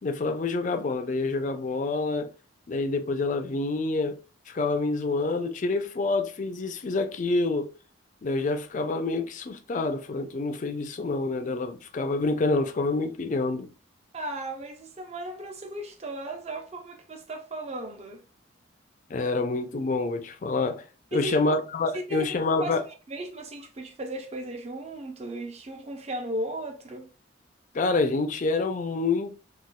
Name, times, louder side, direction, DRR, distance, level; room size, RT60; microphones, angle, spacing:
voice 1, 0.0-2.3 2.7-4.2 4.5-7.7 8.2-13.7 19.1-22.8 27.7-29.3, left 3 dB, 40° left, 0.4 m, -27 dB
voice 2, 14.1-18.2 21.1-21.5 21.9-22.3 22.6-22.8 23.1-27.1, right 1 dB, 35° right, 0.5 m, -36 dB
4.0 x 2.3 x 2.2 m
head